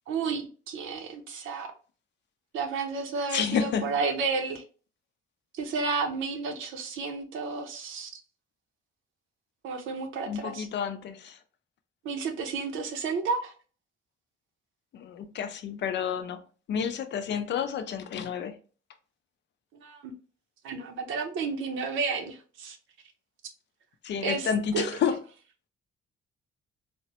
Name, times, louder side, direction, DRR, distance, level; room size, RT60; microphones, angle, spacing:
voice 1, 0.1-1.7 2.5-4.6 5.5-8.1 9.6-10.7 12.0-13.5 19.8-20.1 20.6-22.8 24.2-24.8, right 4 dB, 80° right, 0.7 m, -31 dB
voice 2, 3.3-3.9 10.2-11.4 14.9-16.4 16.7-18.6 24.0-25.2, left 7 dB, 65° left, 0.5 m, -30 dB
3.3 x 2.1 x 2.8 m
cardioid pair, 90°, 20 cm